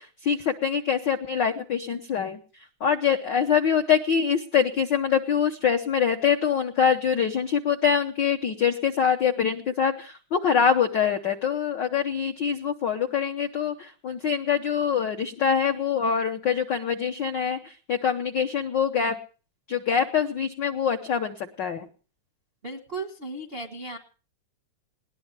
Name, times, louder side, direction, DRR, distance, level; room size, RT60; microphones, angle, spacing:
voice 1, 0.0-2.4 2.8-17.6 17.9-19.1 19.7-21.9, left 7 dB, 85° left, 5 dB, 0.9 m, -24 dB
voice 2, 22.6-24.0, right 2 dB, 55° right, 5 dB, 0.6 m, -35 dB
20.0 x 18.0 x 3.3 m, 0.38 s
omnidirectional pair, 3.4 m